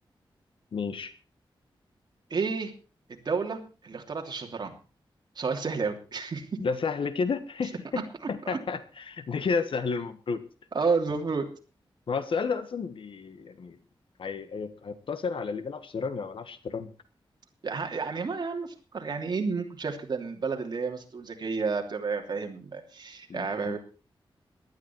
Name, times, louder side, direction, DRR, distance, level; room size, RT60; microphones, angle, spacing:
voice 1, 0.7-1.1 6.6-10.4 12.1-13.8 14.2-16.9 23.3-23.8, left 5 dB, 70° left, 12 dB, 1.4 m, -32 dB
voice 2, 2.3-2.7 3.2-4.7 5.4-6.4 8.5-8.6 10.7-11.4 17.6-23.8, right 4 dB, 50° right, 2 dB, 3.0 m, -31 dB
18.5 x 11.5 x 4.6 m, 0.35 s
wide cardioid pair, 160°, 9 cm